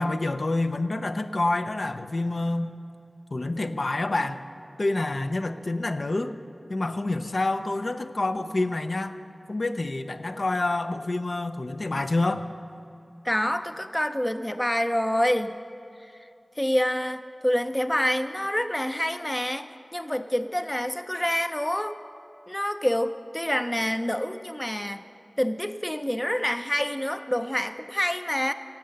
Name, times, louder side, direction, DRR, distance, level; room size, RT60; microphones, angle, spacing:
voice 1, 0.0-2.7 3.3-4.4 4.8-6.4 6.7-9.1 9.5-12.5, left 2 dB, 60° left, 9 dB, 0.5 m, -27 dB
voice 2, 13.2-15.6 16.0-16.1 16.6-22.0 22.5-25.0 25.4-28.5, equal, 15° left, 10 dB, 0.4 m, -27 dB
17.0 x 7.8 x 6.8 m, 2.7 s
wide cardioid pair, 70°, 0 cm